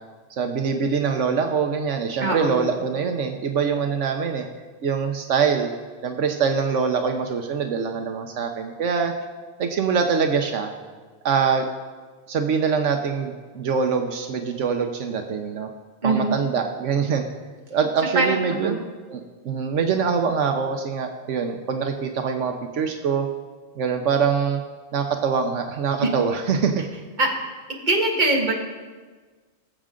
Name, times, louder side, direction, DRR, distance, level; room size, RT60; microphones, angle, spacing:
voice 1, 0.3-4.5 4.8-5.7 6.0-9.1 9.6-10.7 11.2-11.6 12.3-15.7 16.0-17.3 17.7-18.8 19.1-23.3 23.8-24.6 24.9-26.8, right 6 dB, 80° right, 5 dB, 1.1 m, -24 dB
voice 2, 2.2-2.7 16.0-16.4 18.2-18.8 26.0-26.1 27.2-27.4 27.8-28.5, right 2 dB, 40° right, 0 dB, 1.7 m, -22 dB
19.5 x 7.5 x 3.7 m, 1.4 s
omnidirectional pair, 1.2 m